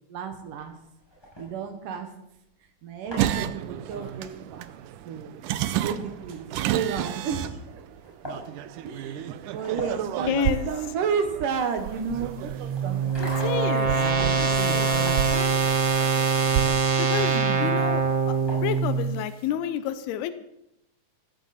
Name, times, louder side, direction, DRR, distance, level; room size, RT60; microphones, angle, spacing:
voice 1, 0.1-0.7 1.4-2.1 2.8-4.7 5.1-5.3 5.8-7.6 8.8-13.1 13.4-15.5 17.3-17.8, right 6 dB, 65° right, 7 dB, 2.6 m, -32 dB
sound 1, 0.6-2.2 2.8-19.2, equal, 5° left, 6.4 m, -44 dB
sound 2, 3.2-16.7, right 12 dB, 85° right, 1.8 m, -32 dB
voice 2, 10.3-10.7 13.2-14.0 14.4-14.9 17.0-18.0 18.3-18.4 18.6-20.3, left 11 dB, 90° left, 12 dB, 2.8 m, -30 dB
sound 3, 12.1-19.2, right 5 dB, 45° right, 1.7 m, -24 dB
16.0 x 15.0 x 4.3 m, 0.83 s
omnidirectional pair, 4.4 m